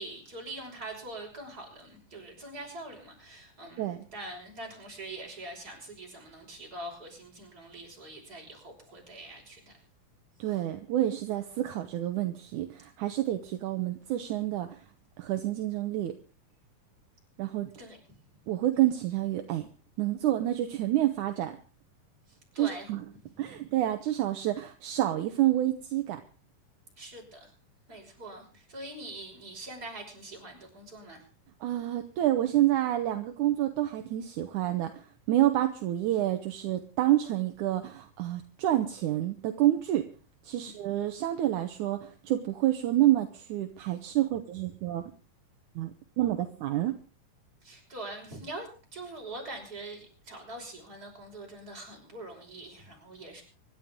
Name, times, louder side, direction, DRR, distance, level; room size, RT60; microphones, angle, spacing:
voice 1, 0.0-9.8 17.8-18.0 22.3-22.9 23.4-23.6 27.0-27.5 27.9-31.2 40.6-40.8 47.6-53.4, right 2 dB, 25° right, 0 dB, 6.1 m, -43 dB
voice 2, 10.4-14.8 15.2-16.1 17.4-17.7 18.5-19.7 20.0-21.6 22.6-23.0 23.4-26.2 31.6-40.1 40.4-45.1 45.8-45.9 46.2-47.0, right 13 dB, 75° right, 6 dB, 2.3 m, -28 dB
25.5 x 11.5 x 3.8 m, 0.37 s
omnidirectional pair, 3.8 m